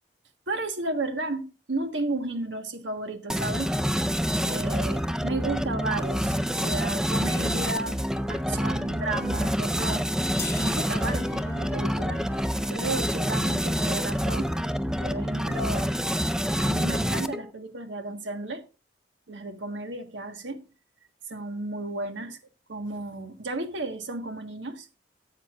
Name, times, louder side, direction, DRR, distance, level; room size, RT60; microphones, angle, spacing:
voice 1, 0.5-3.7 4.4-8.0 8.3-10.1 10.6-12.2 12.7-14.5 15.0-16.0 16.6-18.6 19.3-20.6 21.3-22.4 22.7-24.9, right 2 dB, 80° right, 1.5 m, -33 dB
sound 1, 3.3-17.5, equal, 5° right, 0.4 m, -27 dB
sound 2, 10.4-16.3, left 4 dB, 15° left, 1.2 m, -45 dB
14.5 x 8.3 x 2.5 m
head